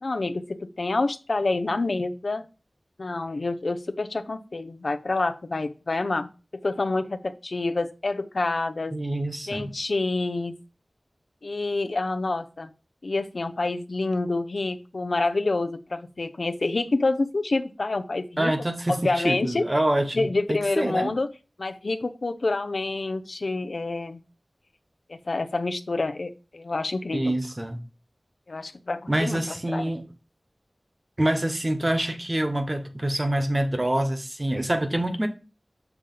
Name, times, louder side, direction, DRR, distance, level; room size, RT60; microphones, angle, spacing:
voice 1, 0.0-2.5 3.0-6.3 6.6-8.9 9.5-10.5 11.4-12.7 13.0-18.5 18.9-19.7 20.1-21.3 21.6-24.2 25.1-27.3 28.5-29.8, left 2 dB, 80° left, 0.6 m, -27 dB
voice 2, 8.9-9.7 18.4-21.1 27.1-27.8 29.1-30.1 31.2-35.3, right 1 dB, 30° right, 1.1 m, -26 dB
7.1 x 3.4 x 5.3 m
wide cardioid pair, 65°, 0 cm